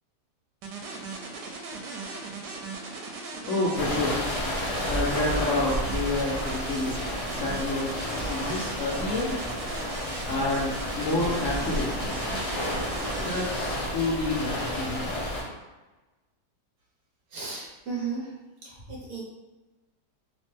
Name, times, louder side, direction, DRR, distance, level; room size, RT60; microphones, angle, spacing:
sound 1, 0.6-13.5, right 3 dB, 80° right, 1.2 m, -38 dB
voice 1, 3.5-4.2 4.8-7.0 7.3-9.3 10.3-12.2 13.2-15.2, left 2 dB, 65° left, -6 dB, 0.8 m, -29 dB
sound 2, 3.8-15.4, equal, 45° left, 0.4 m, -31 dB
voice 2, 17.3-18.4 18.6-19.2, right 5 dB, 65° right, -5 dB, 1.1 m, -35 dB
2.9 x 2.1 x 3.1 m, 1.1 s
omnidirectional pair, 1.8 m